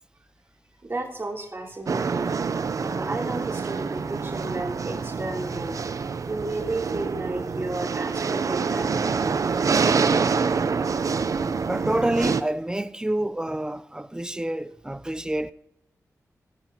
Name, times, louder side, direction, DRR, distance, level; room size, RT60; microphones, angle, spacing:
voice 1, 0.8-2.3 2.8-5.8 6.2-9.7, right 2 dB, 35° right, 3.2 m, -33 dB
sound 1, 1.9-12.4, right 5 dB, 60° right, 0.6 m, -26 dB
voice 2, 10.9-15.5, right 1 dB, 10° right, 0.5 m, -28 dB
16.5 x 7.9 x 2.9 m
cardioid pair, 60°, 6 cm